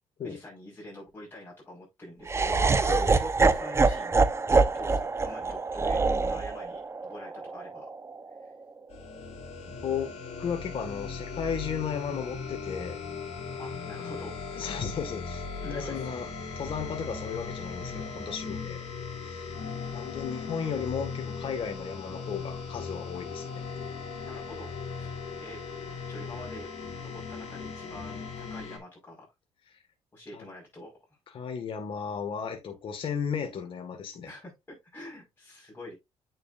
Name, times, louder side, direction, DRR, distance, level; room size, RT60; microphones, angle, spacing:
voice 1, 0.2-4.2 4.7-7.9 8.4-8.5 13.6-14.7 15.6-16.2 24.2-25.1 25.4-25.6 26.1-26.7 27.0-29.2 30.1-30.9 34.2-35.9, left 1 dB, 20° left, 5.1 m, -46 dB
Laughter, 2.3-8.4, right 3 dB, 25° right, 0.8 m, -25 dB
sound 1, 8.9-28.8, left 5 dB, 75° left, 2.9 m, -38 dB
voice 2, 9.7-10.1 10.4-13.0 14.6-16.3 16.6-18.8 19.2-19.6 19.9-23.5 29.7-29.8 30.3-30.4 31.3-34.3, left 7 dB, 50° left, 1.9 m, -34 dB
8.9 x 6.7 x 2.6 m
cardioid pair, 110°, 11 cm